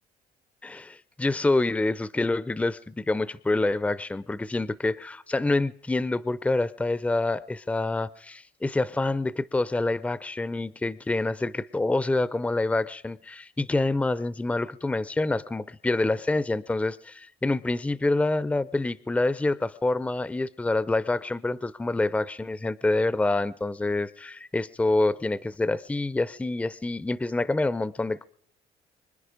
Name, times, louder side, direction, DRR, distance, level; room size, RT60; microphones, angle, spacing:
voice 1, 0.6-28.2, left 2 dB, 10° left, 18 dB, 0.5 m, -27 dB
25.0 x 10.5 x 5.1 m, 0.63 s
cardioid pair, 110°, 17 cm